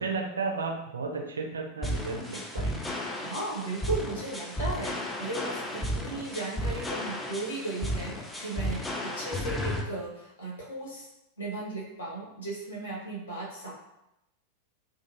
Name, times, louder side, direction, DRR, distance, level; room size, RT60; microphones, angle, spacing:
voice 1, 0.0-2.8, right 4 dB, 70° right, 2 dB, 0.4 m, -33 dB
sound 1, 1.8-9.8, equal, 10° left, 0.4 m, -33 dB
voice 2, 3.1-11.1 11.4-13.7, right 2 dB, 70° left, -4 dB, 0.9 m, -36 dB
2.4 x 2.3 x 2.9 m, 0.86 s
figure-of-eight pair, 90°, 0 cm